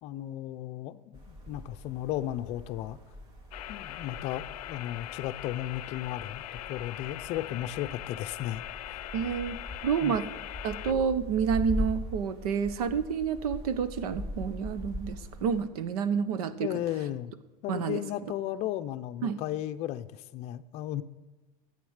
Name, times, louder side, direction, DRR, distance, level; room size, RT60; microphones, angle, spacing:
voice 1, 0.0-3.0 3.7-8.6 10.0-10.1 16.6-17.3 17.6-21.0, left 13 dB, 35° left, 10 dB, 0.6 m, -35 dB
sound 1, 1.1-15.7, left 1 dB, 25° right, 2.9 m, -41 dB
sound 2, 3.5-10.9, left 15 dB, 80° left, 0.6 m, -41 dB
voice 2, 9.1-10.3 10.6-16.7 17.7-18.3 19.2-19.4, right 7 dB, 75° right, 12 dB, 1.3 m, -29 dB
14.0 x 8.7 x 6.6 m, 1.2 s
supercardioid pair, 165°, 19 cm